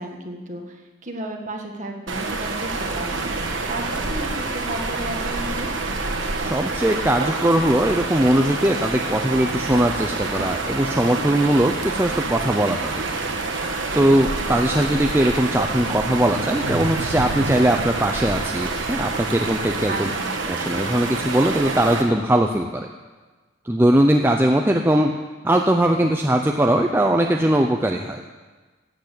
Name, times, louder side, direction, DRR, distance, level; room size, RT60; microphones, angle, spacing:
voice 1, 0.0-5.7 19.9-20.3, right 1 dB, 35° right, 2 dB, 1.7 m, -33 dB
sound 1, 2.1-22.0, right 3 dB, 70° right, 1.6 m, -27 dB
voice 2, 6.4-13.2 13.9-20.1 20.5-22.9 23.6-25.1 25.4-28.2, right 1 dB, 10° right, 3 dB, 0.5 m, -20 dB
sound 2, 15.8-19.2, right 3 dB, 90° right, 0.5 m, -33 dB
13.0 x 8.3 x 8.3 m, 1.3 s
head